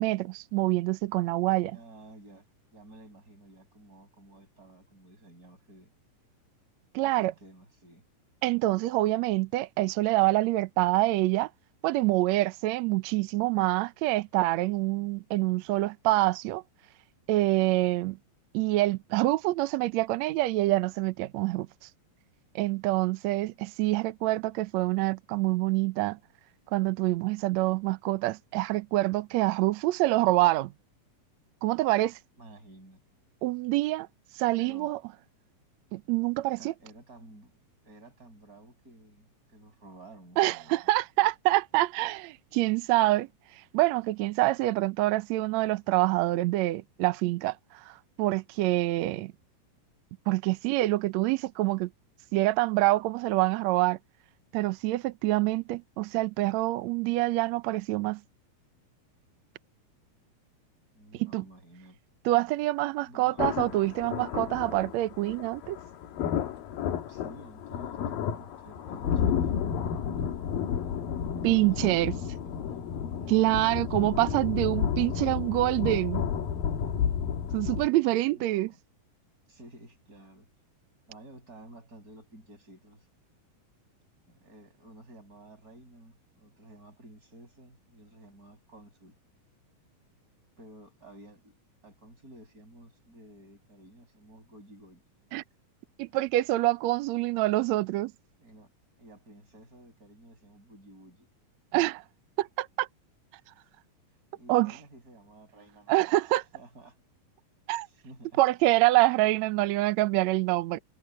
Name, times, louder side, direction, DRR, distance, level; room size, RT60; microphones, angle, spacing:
voice 1, 0.0-1.8 6.9-7.3 8.4-11.5 11.8-16.6 17.3-18.2 18.5-21.7 22.5-26.2 26.7-30.7 31.6-32.2 33.4-34.1 34.4-35.0 35.9-36.7 40.4-43.3 43.7-47.6 47.9-49.3 50.3-51.9 52.3-54.0 54.5-58.2 61.2-61.4 62.2-65.8 71.4-72.1 73.3-76.2 77.5-78.7 95.3-95.4 96.0-98.1 101.7-102.0 102.4-102.9 104.5-104.7 105.9-106.4 107.7-107.9 108.4-110.8, right 18 dB, 80° right, 1.6 m, -26 dB
voice 2, 1.7-5.9 7.0-8.0 32.4-33.0 34.6-34.9 36.6-37.5 37.8-40.9 60.9-62.0 63.0-63.4 67.1-69.5 71.3-72.8 73.2-73.6 78.3-78.8 79.5-80.5 81.1-83.1 84.3-89.2 90.6-91.6 91.8-95.1 98.4-98.7 99.0-101.3 104.3-106.0 106.5-107.0 107.8-108.4, right 1 dB, 25° right, 6.2 m, -52 dB
sound 1, 63.4-77.9, left 8 dB, 80° left, 3.4 m, -31 dB
omnidirectional pair, 4.0 m